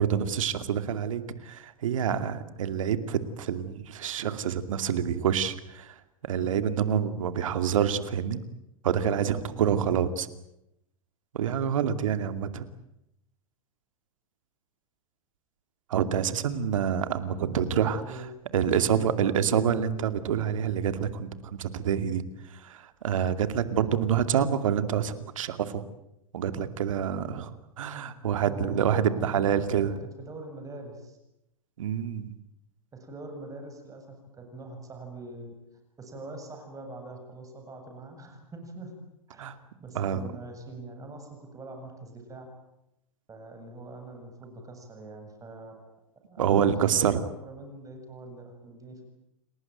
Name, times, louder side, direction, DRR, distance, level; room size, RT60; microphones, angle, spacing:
voice 1, 0.0-6.0 6.2-8.4 8.8-10.3 11.3-12.7 15.9-18.2 18.5-22.2 22.5-25.8 26.3-29.9 31.8-32.3 39.4-39.6 39.9-40.2 46.4-47.2, right 8 dB, 70° right, 11 dB, 2.4 m, -27 dB
voice 2, 9.5-9.9 17.4-18.3 18.5-19.4 28.5-29.9 30.2-31.2 32.9-35.5 36.0-38.9 39.3-39.5 39.8-42.5 43.3-45.8 46.2-49.1, right 2 dB, 20° right, 5 dB, 7.5 m, -43 dB
29.0 x 19.0 x 9.3 m, 0.85 s
hypercardioid pair, 100°, 18 cm